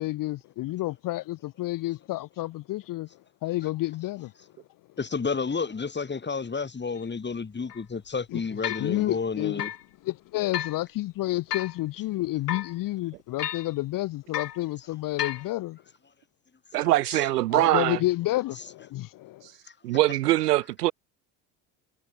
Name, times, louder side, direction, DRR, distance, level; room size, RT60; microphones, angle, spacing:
voice 1, 0.0-3.1 3.4-4.3 8.3-8.4 8.8-9.6 10.0-15.8 17.5-19.5, left 17 dB, 45° left, 0.8 m, -30 dB
voice 2, 5.0-9.7 16.7-16.9, left 5 dB, 25° left, 3.2 m, -31 dB
sound 1, 7.0-7.1 7.7-7.8 8.6-8.9 9.6-9.8 10.5-10.8 11.5-11.8 12.5-12.7 13.4-13.7 14.3-14.6 15.2-15.5, left 10 dB, 85° left, 3.8 m, -32 dB
voice 3, 16.7-18.0 19.8-20.9, right 16 dB, 80° right, 1.1 m, -23 dB
hypercardioid pair, 65°, 46 cm